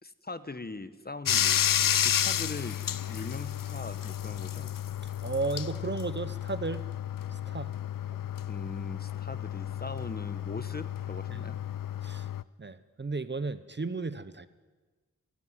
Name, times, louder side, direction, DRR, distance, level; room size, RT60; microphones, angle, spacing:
voice 1, 0.0-4.7 8.5-11.6, left 3 dB, 30° left, 13 dB, 1.0 m, -41 dB
Bathtub (filling or washing), 1.3-12.4, left 10 dB, 85° left, 0.6 m, -31 dB
voice 2, 5.2-6.8 7.3-7.7 11.3-11.4 12.0-12.3 12.6-14.5, right 3 dB, 35° right, 14 dB, 0.8 m, -34 dB
29.0 x 11.5 x 9.6 m, 1.4 s
wide cardioid pair, 105°, 32 cm